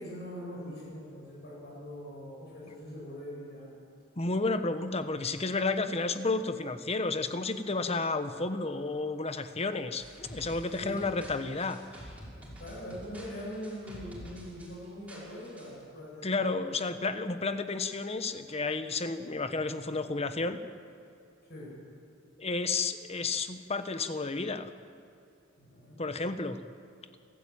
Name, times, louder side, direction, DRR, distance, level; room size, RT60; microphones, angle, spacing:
voice 1, 0.0-3.7 10.7-11.1 12.6-16.4 21.5-21.7 25.6-26.0, equal, 55° left, -4 dB, 8.0 m, -42 dB
voice 2, 4.2-11.8 16.2-20.6 22.4-24.7 26.0-26.6, left 3 dB, 30° left, 10 dB, 1.1 m, -31 dB
sound 1, 10.0-15.8, equal, 5° right, 5.6 m, -48 dB
29.0 x 13.5 x 8.9 m, 2.6 s
head